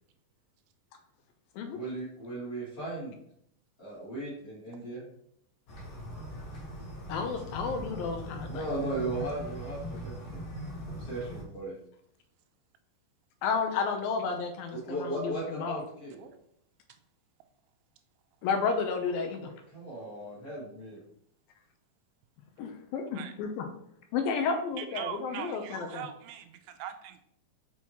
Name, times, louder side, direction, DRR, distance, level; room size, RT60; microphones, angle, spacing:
voice 1, 1.7-3.1 3.8-5.0 8.5-10.4 10.9-11.7 14.7-16.2 19.7-21.0, right 2 dB, 30° left, -6 dB, 2.1 m, -37 dB
sound 1, 5.7-11.4, equal, 60° left, 1.8 m, -40 dB
voice 2, 7.1-8.7 13.4-15.8 18.4-19.5 22.6-23.7 24.1-26.1, left 5 dB, 80° left, 5 dB, 2.4 m, -32 dB
voice 3, 24.8-27.2, right 10 dB, 85° right, 7 dB, 2.4 m, -41 dB
6.2 x 5.5 x 2.9 m, 0.71 s
omnidirectional pair, 4.3 m